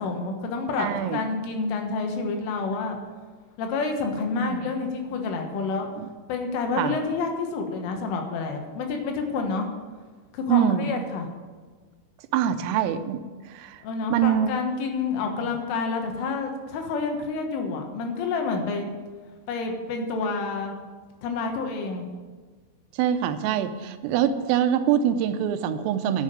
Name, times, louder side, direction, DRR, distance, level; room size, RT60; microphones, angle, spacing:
voice 1, 0.0-3.0 3.6-5.9 6.3-9.7 10.3-11.3 13.8-18.9 19.5-20.8 21.2-22.1, left 4 dB, 75° left, 3 dB, 3.8 m, -28 dB
voice 2, 0.8-1.2 4.4-4.6 6.0-6.1 6.8-7.0 10.5-10.9 12.3-13.8 14.1-14.5 23.0-26.2, right 9 dB, 85° right, 10 dB, 3.3 m, -24 dB
10.5 x 7.4 x 9.1 m, 1.4 s
omnidirectional pair, 5.8 m